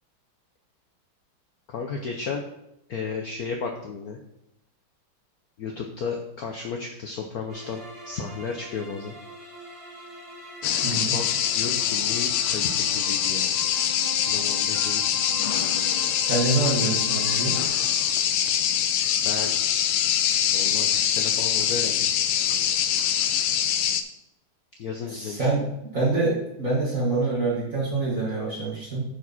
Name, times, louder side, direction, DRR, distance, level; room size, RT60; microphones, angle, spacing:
voice 1, 1.7-2.4 2.9-4.2 5.6-9.1 11.0-11.3 11.5-13.5 14.3-15.1 19.2-19.6 20.5-22.1 24.8-25.5, left 5 dB, 60° left, 3 dB, 1.0 m, -33 dB
sound 1, 7.5-17.7, right 1 dB, 65° right, 3.6 m, -41 dB
sound 2, 10.6-24.0, left 9 dB, 90° left, 1.5 m, -24 dB
voice 2, 10.8-11.2 16.2-17.6 25.1-25.6 25.9-29.0, right 3 dB, 40° right, -7 dB, 2.2 m, -25 dB
10.0 x 4.8 x 4.1 m, 0.82 s
omnidirectional pair, 2.3 m